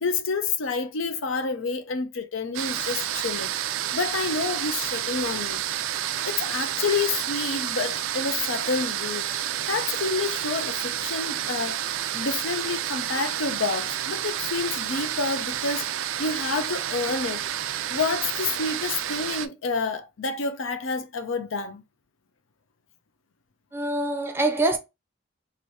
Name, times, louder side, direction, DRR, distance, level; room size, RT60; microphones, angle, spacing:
voice 1, 0.0-3.5 3.9-5.6 6.2-9.3 9.7-11.8 12.1-15.9 16.2-17.4 17.9-21.8, left 4 dB, 80° left, 0.6 m, -28 dB
sound 1, 2.5-19.5, right 11 dB, 85° right, 0.4 m, -30 dB
voice 2, 23.7-24.8, right 2 dB, 10° right, 0.5 m, -24 dB
2.9 x 2.6 x 3.2 m
head